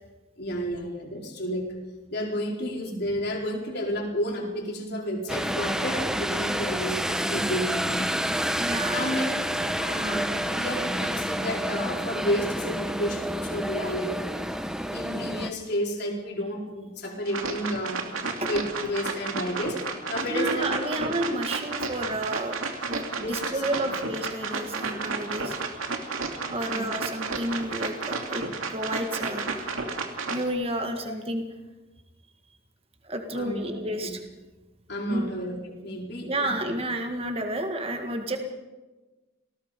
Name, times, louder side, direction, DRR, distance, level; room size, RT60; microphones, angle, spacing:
voice 1, 0.4-1.7 2.1-8.1 8.9-9.3 9.7-14.1 14.9-18.0 18.5-19.8 20.1-21.4 23.2-24.0 26.6-26.8 30.8-31.1 33.3-33.7 34.0-34.2 34.9-36.5, equal, 50° left, 0 dB, 4.6 m, -31 dB
sound 1, 5.3-15.5, equal, 5° right, 0.9 m, -29 dB
voice 2, 8.6-9.1 18.4-18.5 20.3-22.6 22.9-25.6 26.5-28.4 28.7-29.5 30.3-31.4 33.0-34.2 35.1-35.3 36.3-38.4, right 1 dB, 30° right, 5 dB, 1.7 m, -30 dB
sound 2, 17.3-30.5, right 4 dB, 85° right, 2.5 m, -32 dB
28.0 x 19.0 x 5.3 m, 1.2 s
head